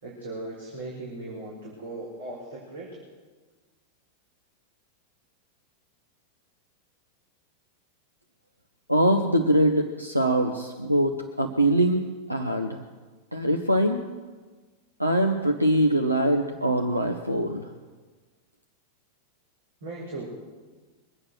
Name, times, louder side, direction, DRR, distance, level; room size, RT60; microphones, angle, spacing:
voice 1, 0.0-3.0 19.8-20.4, right 2 dB, 65° right, -4 dB, 4.2 m, -38 dB
voice 2, 8.9-12.8 13.3-14.1 15.0-17.7, right 1 dB, 90° right, 3 dB, 0.9 m, -23 dB
23.0 x 8.8 x 6.3 m, 1.3 s
figure-of-eight pair, 90°, 0 cm